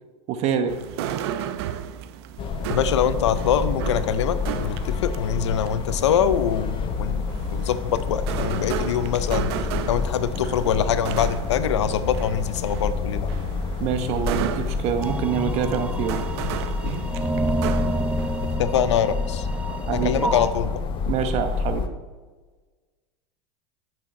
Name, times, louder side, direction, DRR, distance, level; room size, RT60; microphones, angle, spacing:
voice 1, 0.3-0.8 13.8-16.2 19.9-20.3 21.1-21.8, right 8 dB, 50° right, 8 dB, 1.0 m, -25 dB
sound 1, 0.7-18.6, right 10 dB, 65° right, 0.6 m, -34 dB
sound 2, 2.4-21.9, left 5 dB, 35° left, 0.7 m, -29 dB
voice 2, 2.7-7.2 7.5-9.5 9.9-13.3 18.6-19.5 19.9-20.8, left 8 dB, 90° left, 13 dB, 0.6 m, -24 dB
sound 3, 15.0-20.5, right 2 dB, 10° right, 0.5 m, -29 dB
8.5 x 6.2 x 4.2 m, 1.4 s
supercardioid pair, 110°, 14 cm